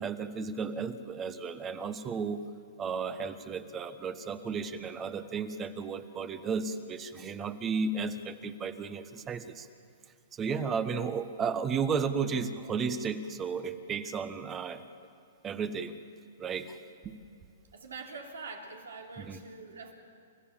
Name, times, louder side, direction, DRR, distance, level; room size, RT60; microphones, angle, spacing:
voice 1, 0.0-2.4 2.8-9.7 10.3-14.8 15.4-16.0 16.4-16.8 17.0-17.1 19.2-19.4, right 5 dB, 20° right, 11 dB, 1.2 m, -33 dB
voice 2, 17.7-19.9, right 4 dB, 90° right, 2 dB, 3.3 m, -44 dB
30.0 x 14.0 x 7.3 m, 2.4 s
hypercardioid pair, 130°, 0 cm